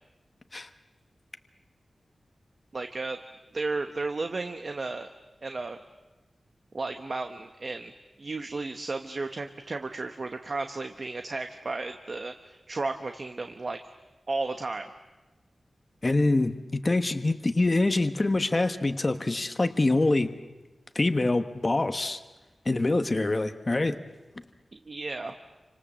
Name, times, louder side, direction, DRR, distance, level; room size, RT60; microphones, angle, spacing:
voice 1, 2.7-3.2 3.5-5.1 5.4-5.8 6.7-7.9 8.2-13.8 14.3-14.9 24.7-25.3, right 3 dB, 45° right, 7 dB, 1.1 m, -33 dB
voice 2, 16.0-20.3 20.9-22.2 22.6-24.0, left 2 dB, 30° left, 8 dB, 1.2 m, -25 dB
29.5 x 26.0 x 7.5 m, 1.1 s
wide cardioid pair, 125°, 0 cm